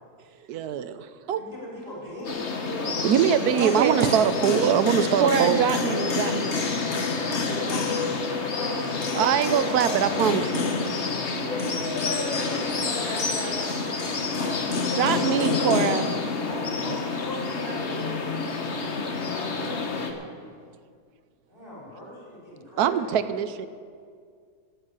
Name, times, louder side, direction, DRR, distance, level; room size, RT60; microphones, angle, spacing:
voice 1, 0.5-1.1 3.0-5.7 9.1-10.7 22.8-23.7, right 9 dB, 80° right, 12 dB, 1.2 m, -22 dB
voice 2, 1.3-4.6 7.4-8.9 9.3-10.7 14.2-15.6 16.4-18.5 21.5-23.0, equal, 35° right, -5 dB, 5.4 m, -39 dB
sound 1, 1.8-17.2, equal, 5° right, 3.6 m, -49 dB
sound 2, 2.2-20.1, left 4 dB, 50° left, 1.4 m, -28 dB
voice 3, 3.6-4.2 5.2-6.6 14.9-16.1, right 7 dB, 55° right, 11 dB, 0.8 m, -25 dB
voice 4, 11.5-13.8, left 1 dB, 65° left, -4 dB, 2.3 m, -34 dB
17.0 x 7.3 x 8.8 m, 2.1 s
omnidirectional pair, 1.6 m